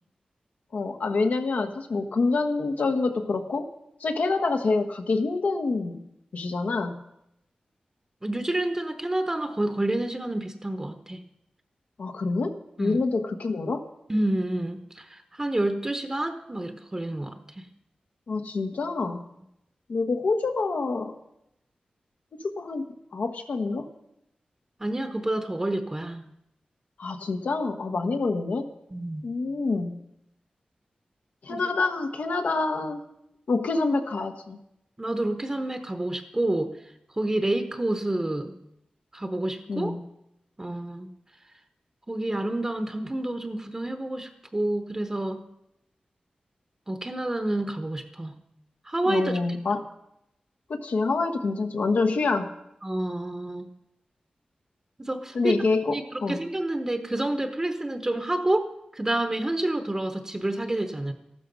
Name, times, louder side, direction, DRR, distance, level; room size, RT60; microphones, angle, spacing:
voice 1, 0.7-3.7 4.0-6.0 6.3-7.0 12.0-13.9 18.3-19.2 19.9-21.1 22.4-23.9 27.0-28.7 29.2-30.0 31.4-33.1 33.5-34.6 39.7-40.0 49.1-49.8 50.7-52.5 55.3-56.4, left 3 dB, 80° left, 7 dB, 1.2 m, -27 dB
voice 2, 8.2-11.2 12.8-13.0 14.1-17.7 24.8-26.2 28.9-29.3 31.5-31.6 35.0-36.7 37.2-38.5 39.1-39.9 40.6-41.1 42.1-45.4 46.9-48.4 48.8-49.4 52.8-53.7 55.0-55.5 55.9-61.1, right 1 dB, 20° right, 8 dB, 0.8 m, -29 dB
13.5 x 12.5 x 5.3 m, 0.82 s
wide cardioid pair, 120°, 3 cm